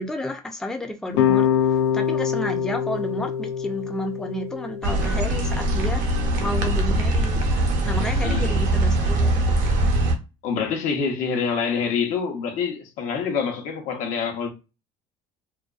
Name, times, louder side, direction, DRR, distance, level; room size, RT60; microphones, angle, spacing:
voice 1, 0.0-1.5 1.9-6.0 6.4-7.4 7.8-9.5, left 1 dB, 5° left, 0.4 m, -31 dB
sound 1, 1.1-6.3, left 8 dB, 90° left, 0.4 m, -25 dB
sound 2, 4.8-10.1, right 1 dB, 65° right, 0.7 m, -22 dB
voice 2, 8.2-8.6 10.4-14.5, left 6 dB, 70° left, 0.8 m, -26 dB
2.4 x 2.1 x 2.4 m
supercardioid pair, 100°, 14 cm